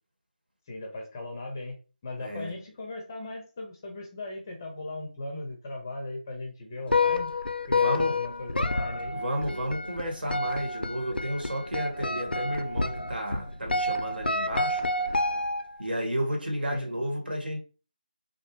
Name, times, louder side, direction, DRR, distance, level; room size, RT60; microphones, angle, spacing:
voice 1, 0.7-1.8 2.0-7.3 7.7-9.2 16.7-16.9, left 2 dB, 20° left, 0.5 m, -38 dB
voice 2, 2.2-2.5 7.7-8.2 9.1-14.8 15.8-17.6, equal, 75° right, 1.2 m, -32 dB
sound 1, 6.9-15.9, left 2 dB, 80° left, 0.4 m, -29 dB
2.6 x 2.0 x 2.8 m
figure-of-eight pair, 160°, 5 cm